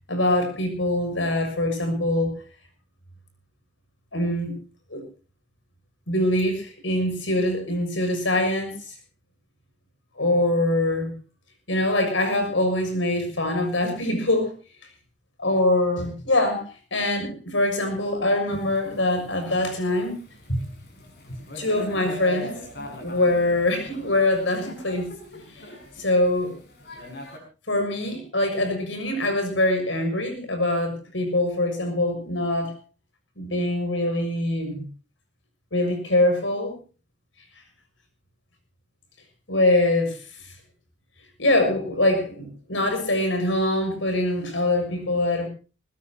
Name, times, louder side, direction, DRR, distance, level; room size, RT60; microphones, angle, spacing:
voice 1, 0.1-2.4 4.1-4.6 4.9-5.0 6.1-8.9 10.2-11.1 11.7-14.5 15.4-20.1 20.5-20.6 21.3-22.6 23.0-25.1 25.5-25.7 26.0-26.6 27.7-32.8 33.4-34.9 35.7-36.8 39.5-40.2 41.4-45.5, left 1 dB, 85° left, 6 dB, 6.7 m, -23 dB
Thunder / Rain, 18.5-27.4, left 1 dB, 55° left, 6.5 m, -42 dB
21.5 x 20.0 x 2.9 m, 0.34 s
head